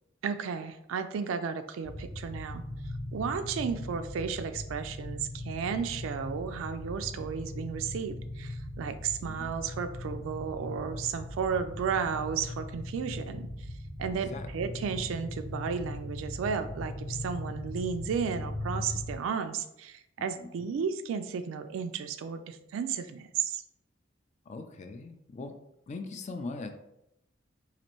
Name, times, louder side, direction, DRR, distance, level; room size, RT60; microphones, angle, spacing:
voice 1, 0.2-2.6 3.1-13.5 14.0-23.6, right 6 dB, 85° right, 9 dB, 0.3 m, -33 dB
sound 1, 1.8-19.1, left 1 dB, 20° left, 0.9 m, -39 dB
voice 2, 20.4-20.7 24.5-25.5 25.9-26.7, left 3 dB, 35° left, 7 dB, 0.3 m, -40 dB
4.1 x 2.5 x 3.0 m, 0.83 s
head